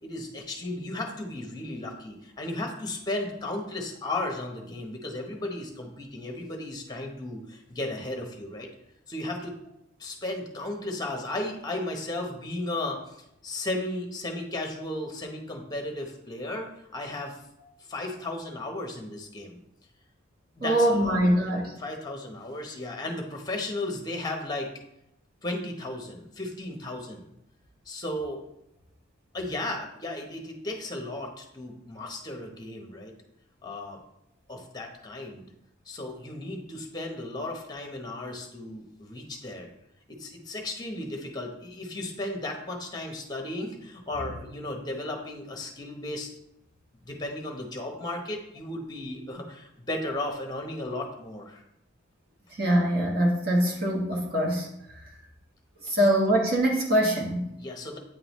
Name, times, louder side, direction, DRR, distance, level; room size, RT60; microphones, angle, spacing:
voice 1, 0.0-8.7 9.1-9.5 10.0-13.2 13.4-17.4 17.9-19.6 20.6-21.5 21.8-24.7 25.4-27.3 27.9-28.4 29.3-33.1 33.6-34.0 34.5-35.5 35.8-39.7 40.1-46.3 47.1-51.6 57.6-58.0, left 2 dB, 20° left, 2 dB, 0.9 m, -35 dB
voice 2, 20.6-21.7 52.5-55.0 55.8-57.5, right 1 dB, 50° right, -1 dB, 1.2 m, -24 dB
8.7 x 3.7 x 3.0 m, 0.81 s
head